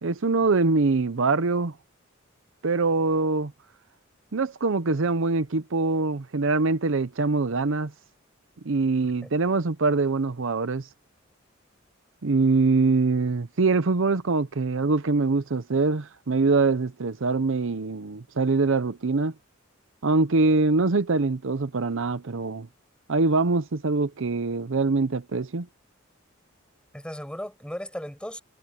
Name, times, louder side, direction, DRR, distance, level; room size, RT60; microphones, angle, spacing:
voice 1, 0.0-1.7 2.6-3.5 4.3-7.9 8.6-10.9 12.2-19.3 20.0-22.7 23.1-25.7, right 3 dB, 70° right, 0.7 m, -23 dB
voice 2, 26.9-28.4, equal, 5° left, 6.7 m, -36 dB
head